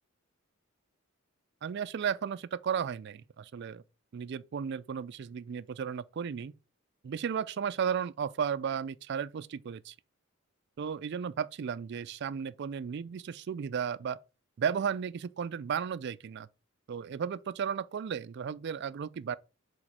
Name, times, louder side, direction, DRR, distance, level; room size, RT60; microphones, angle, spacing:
voice 1, 1.6-3.8 4.1-6.5 7.0-9.9 10.8-14.2 14.6-16.5 16.9-19.4, right 7 dB, 50° right, 0.3 m, -34 dB
5.0 x 4.2 x 5.5 m
head